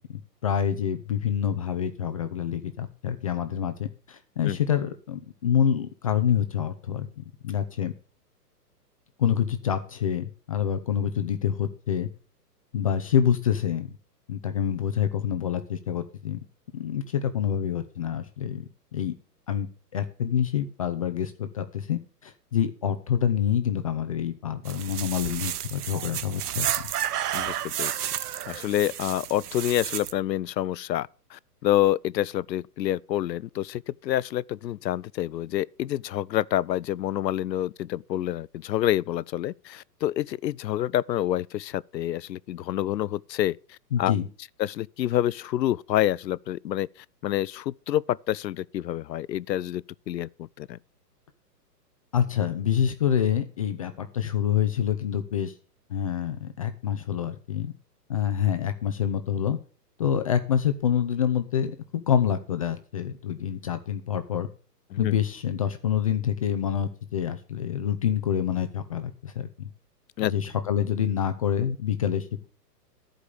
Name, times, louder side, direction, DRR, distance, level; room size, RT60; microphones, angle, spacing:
voice 1, 0.4-7.9 9.2-12.1 12.7-13.9 14.3-16.4 16.7-18.6 18.9-19.1 19.5-26.7 43.9-44.3 52.1-55.5 55.9-57.7 58.1-59.6 60.0-64.5 65.0-69.7 70.2-72.5, left 9 dB, 25° left, 0.4 m, -27 dB
sound 1, 24.7-30.1, right 11 dB, 65° right, 0.8 m, -31 dB
voice 2, 27.3-28.1 28.5-44.1 44.6-46.9 47.2-50.8 64.9-65.1 70.2-70.3, left 13 dB, 90° left, 0.6 m, -28 dB
13.5 x 5.1 x 6.7 m
hypercardioid pair, 135°, 49 cm